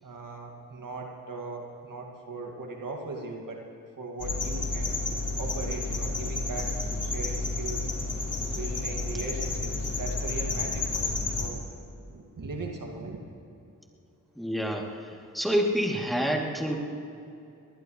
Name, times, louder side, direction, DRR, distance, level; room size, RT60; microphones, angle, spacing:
voice 1, 0.0-3.6 4.0-5.0 5.3-7.9 8.4-11.6 12.1-13.2, right 3 dB, 65° right, 1 dB, 2.1 m, -39 dB
sound 1, 4.2-11.5, left 3 dB, 60° left, 3.0 m, -31 dB
voice 2, 14.4-16.8, equal, ahead, -1 dB, 2.7 m, -28 dB
21.5 x 20.0 x 3.1 m, 2.7 s
supercardioid pair, 40°, 36 cm